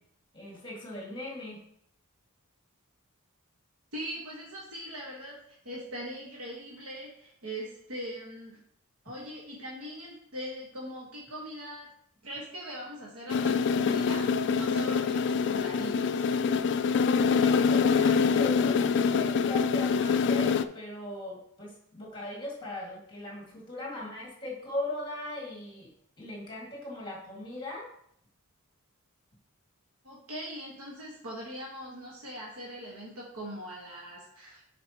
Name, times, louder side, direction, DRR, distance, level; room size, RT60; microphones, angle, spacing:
voice 1, 0.3-1.6 17.1-25.9 26.2-27.9, left 1 dB, 20° left, -3 dB, 1.9 m, -39 dB
voice 2, 3.9-8.6 9.0-11.9 12.2-16.3 30.0-34.6, equal, 75° right, -4 dB, 1.3 m, -41 dB
sound 1, 13.3-20.6, left 5 dB, 55° left, 0.3 m, -25 dB
8.0 x 5.1 x 2.9 m, 0.69 s
head